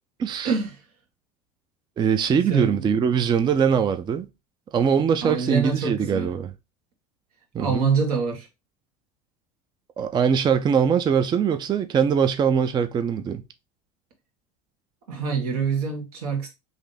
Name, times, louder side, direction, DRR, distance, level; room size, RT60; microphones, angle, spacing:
voice 1, 0.2-0.6 2.0-4.3 4.7-6.5 7.5-7.9 10.0-13.4, right 7 dB, 25° right, 0.4 m, -22 dB
voice 2, 2.5-2.8 5.2-6.3 7.6-8.5 15.1-16.5, right 5 dB, 80° right, 1.4 m, -25 dB
3.6 x 2.6 x 3.8 m
hypercardioid pair, 95°, 19 cm